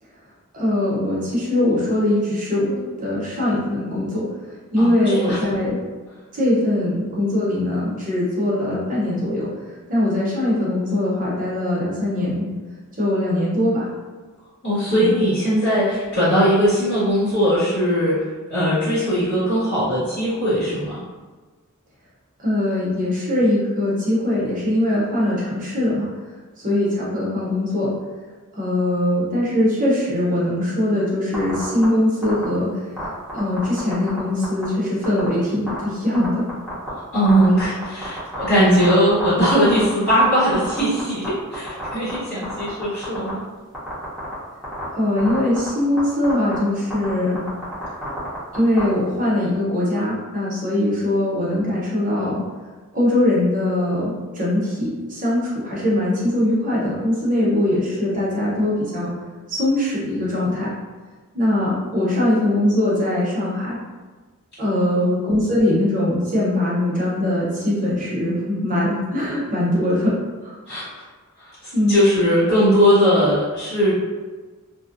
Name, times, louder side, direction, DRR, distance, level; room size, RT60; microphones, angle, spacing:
voice 1, 0.5-4.3 4.7-5.8 6.3-9.5 9.9-12.4 13.0-13.9 14.9-15.1 22.4-26.1 26.6-27.9 28.5-32.7 33.3-36.4 44.9-47.4 48.5-52.4 52.9-59.1 59.5-60.7 61.3-63.8 64.6-70.1 70.4-70.6 71.7-72.0, left 1 dB, 40° right, -7 dB, 0.8 m, -21 dB
voice 2, 4.8-5.4 14.6-18.2 18.5-21.0 37.1-43.4 64.7-65.1 70.7-71.0 71.4-74.0, equal, 55° left, -14 dB, 1.3 m, -19 dB
sound 1, 31.3-31.8 32.2-32.4 33.0-34.2 34.4-34.6 35.0-35.3 35.7-35.8 36.1-36.9 37.2-40.2 40.5-41.3 41.5-42.1 42.4-43.3 43.7-44.3 44.6-44.8 45.2-45.7 46.0-46.1 46.2-46.6 46.9-47.1 47.3-48.8, equal, 5° left, 0.7 m, -30 dB
2.6 x 2.1 x 2.5 m, 1.3 s
head